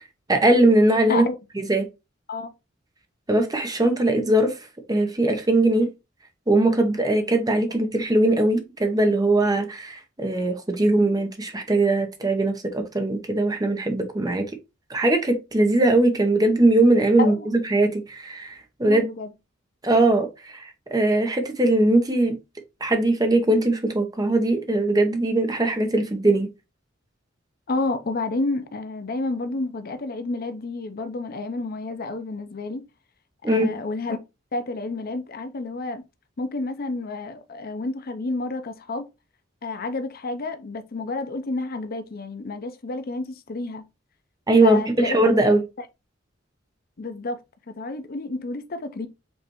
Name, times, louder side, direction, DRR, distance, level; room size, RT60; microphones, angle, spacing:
voice 1, 0.3-1.2 1.6-1.9 3.3-4.5 4.9-5.9 6.5-14.4 14.9-19.1 19.8-22.4 22.8-26.5 33.4-33.7 44.5-45.6, right 2 dB, 20° right, 0.8 m, -20 dB
voice 2, 18.8-19.3 27.7-32.9 33.4-34.2 34.5-36.0 36.4-39.1 39.6-43.8 44.6-45.2 47.0-47.4 47.7-49.1, left 3 dB, 50° left, 0.6 m, -30 dB
5.3 x 3.3 x 3.0 m
head